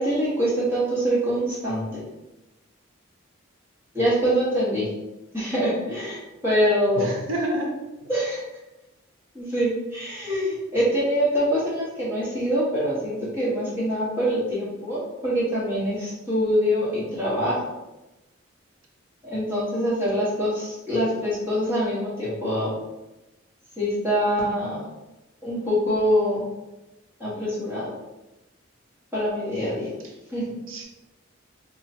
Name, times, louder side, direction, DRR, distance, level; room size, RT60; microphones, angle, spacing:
voice 1, 0.0-2.0 3.9-4.9 5.3-6.2 6.4-7.1 8.1-8.4 9.3-17.6 19.2-22.7 23.8-24.8 25.4-26.4 27.2-27.9 29.1-29.9 30.3-30.5, equal, 10° right, -8 dB, 1.4 m, -24 dB
voice 2, 7.0-7.7 8.0-8.1 30.7-30.8, right 1 dB, 75° right, 0 dB, 0.6 m, -28 dB
3.0 x 2.4 x 4.1 m, 1.0 s
head